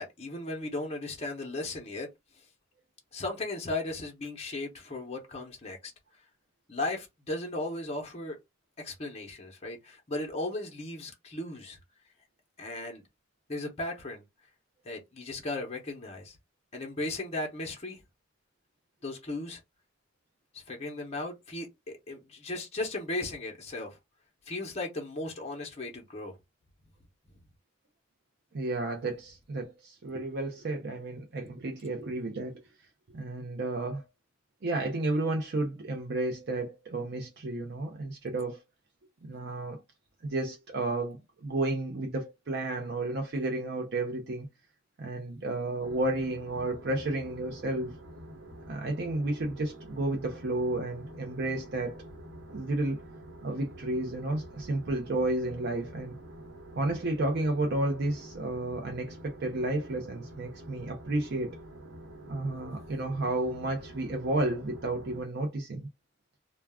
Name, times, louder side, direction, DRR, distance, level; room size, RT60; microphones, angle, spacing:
voice 1, 0.0-2.1 2.4-2.5 3.1-5.9 6.7-8.4 8.8-11.8 12.6-13.0 13.5-14.2 14.8-16.4 16.7-18.0 19.0-19.6 20.5-24.0 24.5-26.4, left 2 dB, 35° left, 0.7 m, -36 dB
voice 2, 28.5-32.6 33.1-34.0 34.6-38.6 39.2-39.8 40.2-44.5 45.0-48.0 48.7-52.0 52.5-53.0 53.4-56.2 56.8-61.6 62.3-65.9, right 2 dB, 65° right, 0.6 m, -32 dB
sound 1, 45.8-65.2, right 1 dB, 80° right, 1.1 m, -47 dB
2.3 x 2.2 x 3.4 m
head